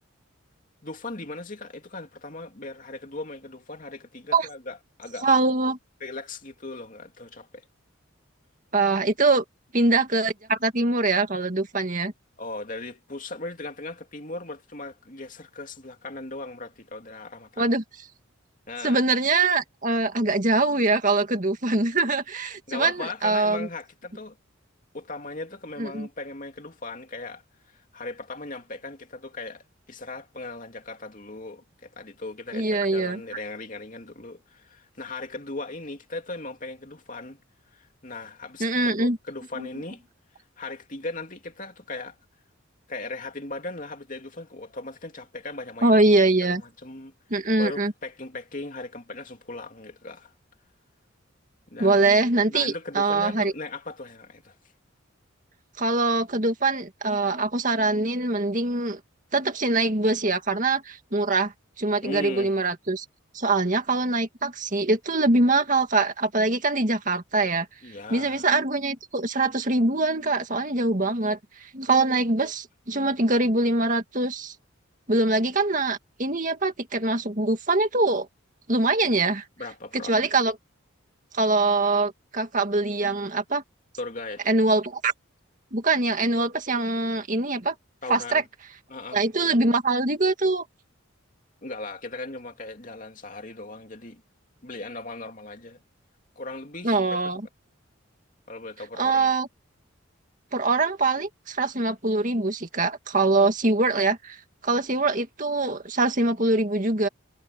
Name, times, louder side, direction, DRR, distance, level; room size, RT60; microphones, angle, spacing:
voice 1, 0.8-5.3 6.0-7.5 12.4-17.8 18.7-19.0 22.7-24.4 24.9-27.4 27.9-37.4 37.7-40.0 40.6-42.2 42.9-46.0 46.4-47.1 47.6-50.3 51.7-52.0 52.5-54.5 62.0-62.5 67.8-68.4 79.6-80.2 84.0-84.4 88.0-88.4 88.9-89.2 91.6-94.2 94.6-95.8 96.4-97.2 98.5-99.3, left 2 dB, 40° left, 2.8 m, -38 dB
voice 2, 5.2-5.8 8.7-9.4 9.7-12.1 17.6-17.8 18.8-23.7 25.8-26.1 32.5-33.2 38.6-39.2 39.6-39.7 45.8-46.6 47.3-47.9 51.8-53.5 55.8-59.0 59.3-61.5 61.8-63.0 63.3-67.7 68.1-74.5 75.1-78.3 78.7-79.4 79.9-80.5 81.3-83.6 84.5-85.1 85.7-87.8 88.1-88.4 89.1-90.6 96.8-97.4 99.0-99.5 100.5-104.4 104.6-107.1, right 3 dB, 40° right, 2.2 m, -23 dB
head